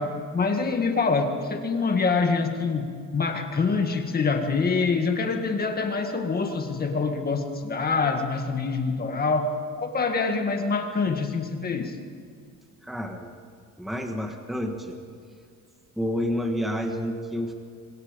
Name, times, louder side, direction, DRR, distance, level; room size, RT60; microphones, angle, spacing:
voice 1, 0.0-2.8 3.1-12.0, left 4 dB, 25° left, 4 dB, 1.9 m, -25 dB
voice 2, 12.8-13.3 13.8-15.0 16.0-17.5, equal, ahead, 3 dB, 1.5 m, -29 dB
29.5 x 25.0 x 5.3 m, 2.2 s
cardioid pair, 170°, 38 cm